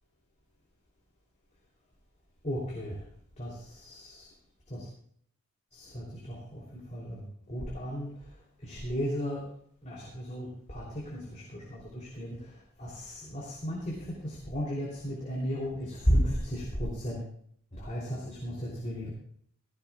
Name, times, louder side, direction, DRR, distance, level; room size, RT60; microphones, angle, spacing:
voice 1, 2.4-3.0 3.4-4.3 4.7-4.9 5.7-7.2 7.5-8.3 8.6-9.4 9.8-17.3 17.7-19.1, equal, 35° left, -4 dB, 3.3 m, -34 dB
16.0 x 15.5 x 2.4 m, 0.63 s
head